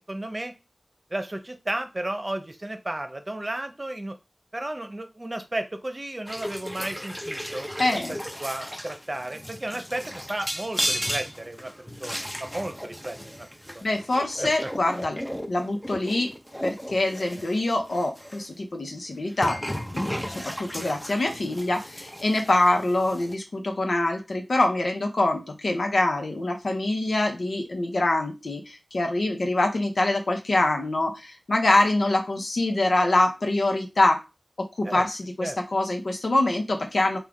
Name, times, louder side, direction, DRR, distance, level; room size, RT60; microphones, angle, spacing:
voice 1, 0.1-0.5 1.1-4.2 4.5-7.7 8.1-13.5 13.7-13.8 14.4-14.7 34.8-35.0 35.4-35.6, right 1 dB, 40° right, 7 dB, 0.7 m, -33 dB
sound 1, 6.3-18.5 19.3-23.3, equal, 5° left, 0.6 m, -35 dB
voice 2, 7.8-8.2 13.8-15.2 15.5-16.3 16.6-34.2 34.6-37.2, left 2 dB, 85° left, 3 dB, 0.8 m, -25 dB
3.4 x 2.4 x 3.7 m, 0.25 s
wide cardioid pair, 40°, 0 cm